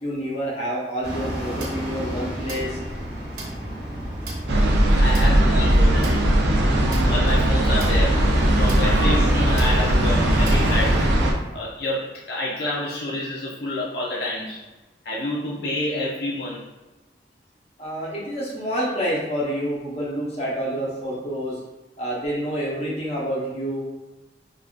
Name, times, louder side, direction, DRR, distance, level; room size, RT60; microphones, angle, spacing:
voice 1, 0.0-2.8 4.5-4.6 17.8-21.6 22.0-23.8, equal, 35° left, -5 dB, 0.8 m, -28 dB
sound 1, 1.0-11.1, equal, 60° right, 0.9 m, -31 dB
sound 2, 4.5-11.3, right 1 dB, 80° right, 0.5 m, -19 dB
voice 2, 5.0-6.2 7.0-8.2 8.6-11.0 11.5-14.6 15.1-16.6, left 1 dB, 65° left, -4 dB, 0.5 m, -28 dB
3.4 x 2.4 x 2.4 m, 1.1 s
head